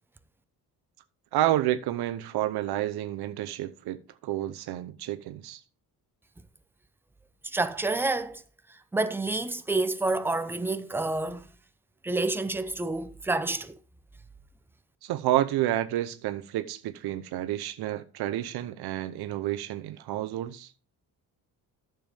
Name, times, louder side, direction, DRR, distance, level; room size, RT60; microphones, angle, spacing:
voice 1, 1.3-5.6 15.0-20.7, right 13 dB, 80° right, 0.8 m, -30 dB
voice 2, 7.4-8.4 8.9-11.5 12.0-13.8, right 2 dB, 5° right, 0.5 m, -28 dB
12.0 x 7.2 x 3.5 m
cardioid pair, 165°, 38 cm